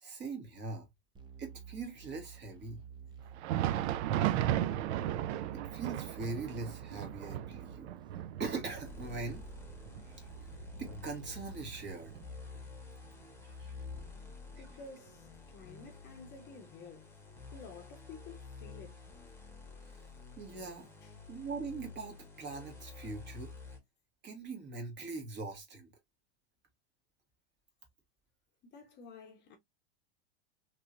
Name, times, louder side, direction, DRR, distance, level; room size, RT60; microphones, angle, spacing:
voice 1, 0.0-0.9 1.4-2.8 5.5-7.9 8.4-9.4 10.1-10.3 10.7-12.1 13.5-13.7 20.4-20.9 21.3-23.5 24.2-25.9, right 4 dB, 30° right, 1.4 m, -41 dB
sound 1, 1.1-11.8, right 7 dB, 15° right, 0.5 m, -51 dB
Thunder, 3.2-12.7 13.0-13.2 13.9-14.1 15.1-15.2, right 12 dB, 70° right, 0.5 m, -36 dB
sound 2, 8.8-23.8, left 4 dB, 5° left, 1.1 m, -50 dB
voice 2, 14.5-17.1 17.5-19.0 21.0-21.1 28.6-29.6, left 4 dB, 30° left, 0.8 m, -52 dB
3.0 x 2.9 x 2.4 m
supercardioid pair, 120°, 34 cm